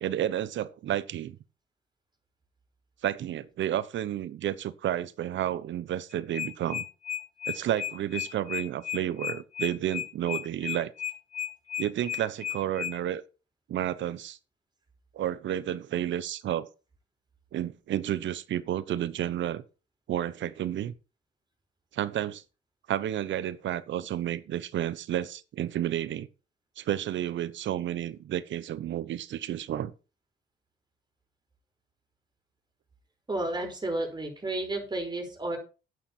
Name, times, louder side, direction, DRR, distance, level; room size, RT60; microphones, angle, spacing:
voice 1, 0.0-1.4 3.0-6.8 7.5-10.9 11.8-13.2 13.7-14.4 15.1-16.7 17.5-19.6 20.1-20.9 21.9-22.4 22.9-26.3 26.8-29.9, right 11 dB, 70° right, 1.0 m, -31 dB
sound 1, 6.1-12.9, left 10 dB, 45° left, 3.7 m, -33 dB
voice 2, 33.3-35.6, right 2 dB, 20° right, 5.2 m, -32 dB
10.5 x 9.5 x 4.5 m
cardioid pair, 90°, 20 cm